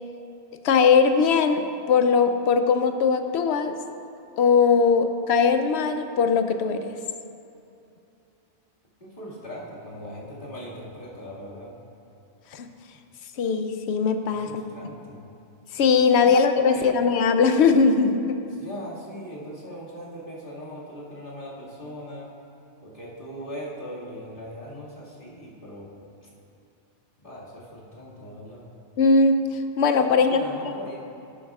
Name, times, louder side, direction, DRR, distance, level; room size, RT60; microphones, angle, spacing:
voice 1, 0.6-3.7 4.4-6.9 12.5-12.7 13.4-14.6 15.7-18.4 29.0-29.4 29.8-30.4 30.8-30.9, left 5 dB, 85° left, 8 dB, 0.9 m, -20 dB
voice 2, 9.0-11.7 14.3-15.2 16.2-16.3 16.6-16.9 18.6-22.3 22.8-25.9 26.2-26.3 27.2-28.6 30.1-31.0, equal, 55° left, -8 dB, 2.2 m, -40 dB
11.5 x 10.5 x 2.4 m, 2.7 s
omnidirectional pair, 1.1 m